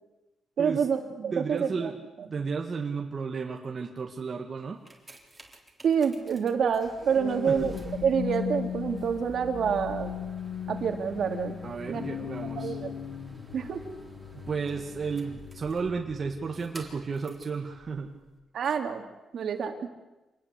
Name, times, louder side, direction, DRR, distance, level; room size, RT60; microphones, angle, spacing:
voice 1, 0.6-1.9 2.2-2.3 5.8-10.2 10.7-11.6 11.9-12.1 12.6-12.9 13.5-13.8 18.5-19.0 19.3-19.9, right 7 dB, 60° right, 6 dB, 2.9 m, -27 dB
voice 2, 1.3-1.9 2.3-4.8 7.5-7.7 11.6-12.8 14.4-18.1, right 5 dB, 35° right, 2 dB, 1.9 m, -33 dB
sound 1, 4.6-17.6 18.3-18.4, right 2 dB, 15° right, 3.8 m, -48 dB
sound 2, 6.7-17.2 17.8-18.1, left 9 dB, 80° left, 1.2 m, -38 dB
26.5 x 20.0 x 8.4 m, 1.1 s
wide cardioid pair, 155°, 0 cm